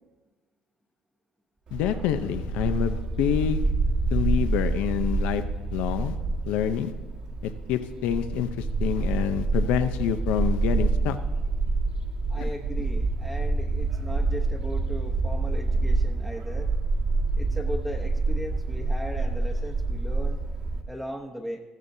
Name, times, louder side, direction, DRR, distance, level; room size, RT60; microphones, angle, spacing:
voice 1, 1.7-3.6 4.1-5.4 5.7-6.2 6.5-6.9 7.4-11.2 12.4-12.5, left 10 dB, 80° left, 9 dB, 0.6 m, -27 dB
Bark, 1.7-20.8, right 3 dB, 50° right, 1.6 m, -27 dB
voice 2, 12.3-16.7 17.4-20.4 20.9-21.6, equal, 5° right, -1 dB, 0.9 m, -37 dB
15.5 x 14.0 x 2.7 m, 1.2 s
cardioid pair, 120°, 2 cm